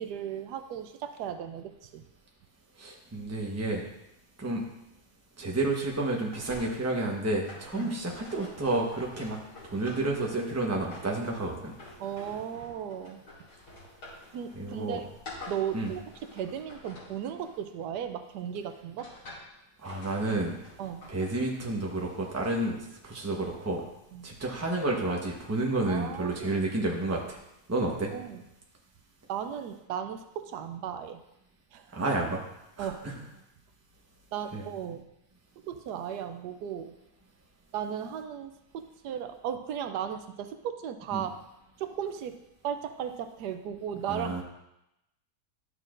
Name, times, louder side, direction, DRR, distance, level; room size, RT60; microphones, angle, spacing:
voice 1, 0.0-2.0 7.7-7.9 12.0-13.2 14.3-15.1 15.5-19.1 20.8-21.1 24.1-24.3 25.9-26.6 28.1-28.4 29.3-31.2 31.7-32.0 32.8-33.2 34.3-35.0 35.6-36.9 37.7-41.3 41.8-42.4 42.6-44.4, right 9 dB, 80° right, 9 dB, 1.2 m, -36 dB
voice 2, 2.8-3.8 4.4-4.6 5.4-9.4 9.7-11.7 14.6-15.0 15.7-15.9 19.8-20.5 21.1-23.8 24.2-27.4 27.7-28.1 31.9-32.4 32.8-32.9 34.5-34.6 41.1-41.2 44.1-44.4, right 2 dB, 10° right, -1 dB, 0.9 m, -30 dB
sound 1, 6.3-18.2 18.7-19.5 19.8-22.8, left 2 dB, 85° left, 3.1 m, -49 dB
11.5 x 6.5 x 2.5 m, 0.86 s
omnidirectional pair, 1.7 m